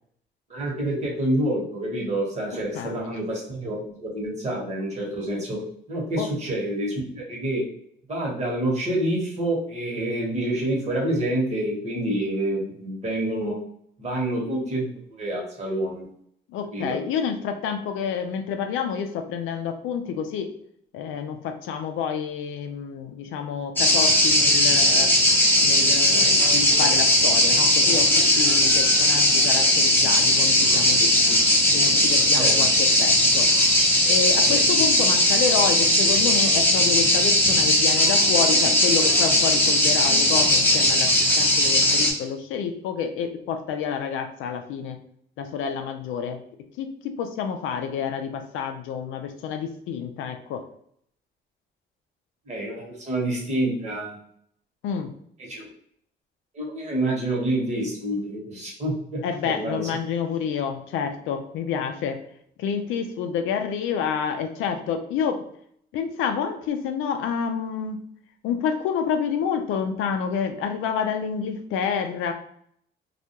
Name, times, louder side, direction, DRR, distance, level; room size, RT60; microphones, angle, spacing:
voice 1, 0.5-5.6 5.9-7.6 8.1-13.6 14.0-16.1 16.7-17.0 32.4-32.5 34.5-34.6 52.5-54.2 55.5-55.6 56.5-59.9, right 1 dB, 35° right, -2 dB, 1.1 m, -27 dB
voice 2, 16.5-20.5 20.9-25.1 25.6-31.4 31.7-33.5 34.1-45.0 45.4-46.4 46.8-50.6 54.8-55.1 59.2-62.2 62.6-65.4 65.9-68.0 68.4-72.3, left 7 dB, 90° left, 6 dB, 0.4 m, -28 dB
sound 1, 23.8-42.1, left 1 dB, 10° left, 0.7 m, -18 dB
2.3 x 2.2 x 2.8 m, 0.67 s
cardioid pair, 90°, 20 cm